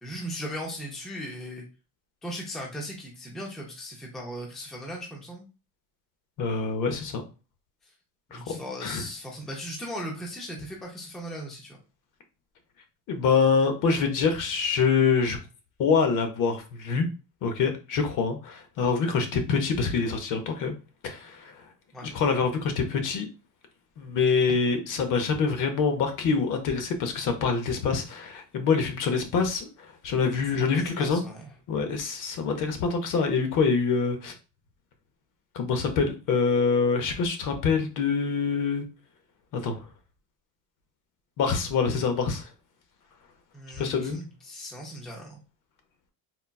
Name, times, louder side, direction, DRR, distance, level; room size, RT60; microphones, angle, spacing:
voice 1, 0.0-1.6 2.2-5.4 8.3-11.8 21.9-22.1 30.6-31.5 43.5-45.4, equal, ahead, -1 dB, 0.4 m, -38 dB
voice 2, 6.4-7.2 8.3-9.0 13.1-15.4 15.8-17.1 17.4-20.8 21.0-21.5 22.0-23.3 24.0-29.7 30.0-31.2 31.7-34.3 35.5-38.8 39.5-39.9 41.4-42.4 43.8-44.2, left 5 dB, 50° left, 6 dB, 0.6 m, -25 dB
3.9 x 2.2 x 2.2 m, 0.31 s
cardioid pair, 170°, 39 cm